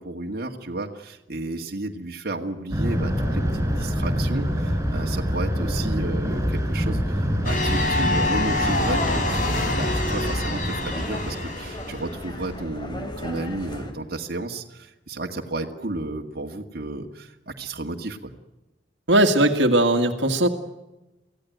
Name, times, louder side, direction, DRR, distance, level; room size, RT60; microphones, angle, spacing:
voice 1, 0.0-18.3, right 2 dB, 55° right, 1 dB, 1.9 m, -32 dB
Thunder, 2.7-11.5, equal, 15° right, 6.4 m, -26 dB
sound 1, 7.4-12.1, left 2 dB, 45° left, 3.8 m, -27 dB
sound 2, 8.6-13.9, left 1 dB, 25° left, 3.1 m, -36 dB
voice 2, 19.1-20.5, right 1 dB, 70° right, 5 dB, 2.0 m, -18 dB
24.5 x 16.0 x 9.2 m, 1.0 s
head